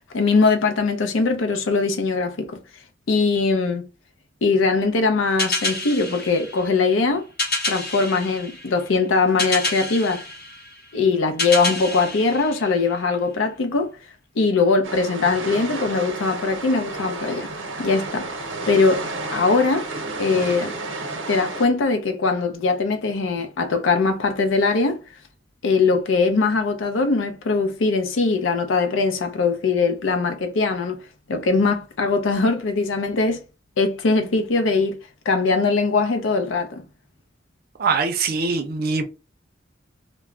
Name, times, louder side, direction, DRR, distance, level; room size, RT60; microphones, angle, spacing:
voice 1, 0.1-2.6 3.1-3.9 4.4-7.3 7.7-10.2 10.9-14.0 14.4-17.5 17.8-18.3 18.7-19.0 19.3-19.9 20.2-20.7 21.3-25.0 25.6-31.0 31.3-33.4 33.8-35.0 35.3-36.8, left 4 dB, 85° left, 0.5 m, -21 dB
sound 1, 5.4-13.3, left 2 dB, 50° left, 0.8 m, -29 dB
sound 2, 14.8-21.7, right 2 dB, 85° right, 0.7 m, -31 dB
voice 2, 37.8-39.0, right 4 dB, 50° right, 0.4 m, -22 dB
2.2 x 2.0 x 3.6 m
head